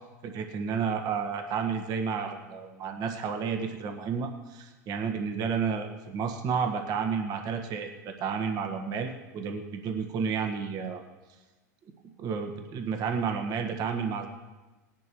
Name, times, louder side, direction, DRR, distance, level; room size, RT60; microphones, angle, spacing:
voice 1, 0.2-11.0 12.2-14.3, right 6 dB, 45° right, 4 dB, 1.5 m, -31 dB
19.0 x 10.5 x 3.1 m, 1.2 s
hypercardioid pair, 100°, 10 cm